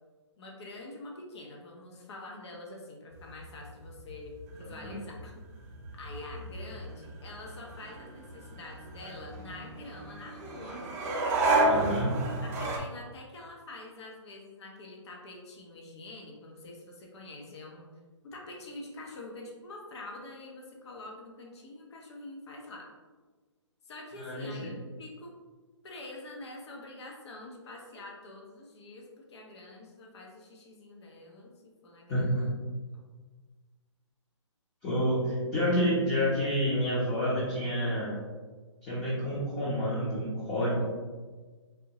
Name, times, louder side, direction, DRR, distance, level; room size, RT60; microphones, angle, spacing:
voice 1, 0.4-5.3 6.0-10.8 12.4-17.9 18.2-22.9 23.8-25.3 25.8-32.6 32.9-33.0, left 2 dB, 60° left, 0 dB, 0.8 m, -46 dB
sound 1, 3.1-12.8, right 2 dB, 30° right, 0.5 m, -32 dB
voice 2, 4.6-5.0 11.6-12.1 24.2-24.7 32.1-32.5 34.8-38.1 38.8-40.8, equal, 20° left, -8 dB, 0.7 m, -29 dB
3.5 x 2.7 x 2.9 m, 1.4 s
hypercardioid pair, 145°, 16 cm